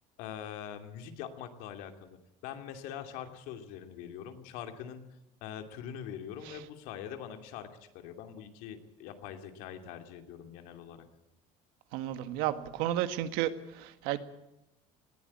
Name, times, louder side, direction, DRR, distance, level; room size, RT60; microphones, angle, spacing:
voice 1, 0.2-5.0 5.4-11.1, left 9 dB, 75° left, 6 dB, 2.7 m, -43 dB
voice 2, 11.9-14.2, right 12 dB, 85° right, 11 dB, 1.7 m, -32 dB
20.0 x 16.0 x 8.6 m, 0.89 s
cardioid pair, 180°, 15 cm